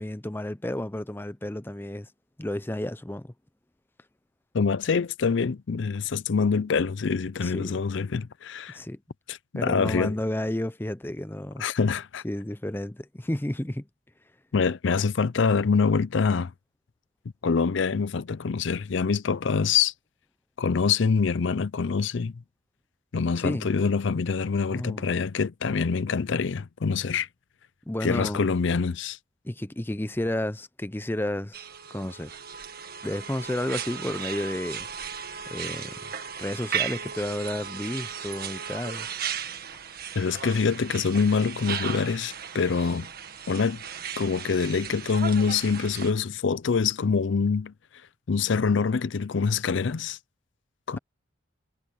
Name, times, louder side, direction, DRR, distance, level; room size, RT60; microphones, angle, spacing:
voice 1, 0.0-2.1 2.4-3.3 7.4-7.8 8.7-9.0 9.5-11.6 12.2-13.9 23.4-23.7 24.7-25.1 27.9-28.4 29.4-32.3 33.0-34.9 35.5-36.0 36.4-39.1, left 1 dB, 10° left, 0.6 m, -31 dB
voice 2, 4.5-8.8 9.3-10.1 11.6-12.2 14.5-16.5 17.4-19.9 20.6-22.3 23.1-27.3 28.0-29.2 40.2-43.1 43.5-43.8 44.2-47.7 48.3-50.2 50.9-51.0, left 5 dB, 60° left, 0.5 m, -25 dB
sound 1, 31.5-46.1, right 7 dB, 50° right, 1.8 m, -36 dB
head